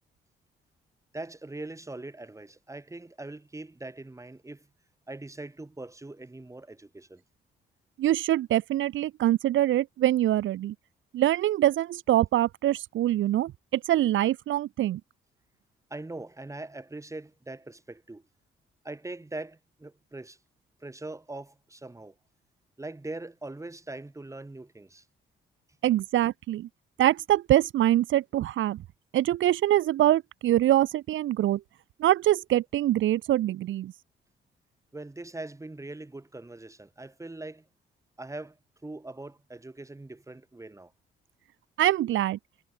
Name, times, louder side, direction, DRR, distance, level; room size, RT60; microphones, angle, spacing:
voice 1, 1.1-4.7 5.1-7.2 15.9-18.2 18.8-20.4 20.8-22.1 22.8-25.0 34.9-37.6 38.2-38.6 38.8-40.9, right 2 dB, 15° right, 6.4 m, -41 dB
voice 2, 8.0-10.7 11.1-15.0 25.8-26.7 27.0-28.8 29.1-31.6 32.0-33.9 41.8-42.4, right 13 dB, 75° right, 1.2 m, -24 dB
cardioid pair, 90°, 20 cm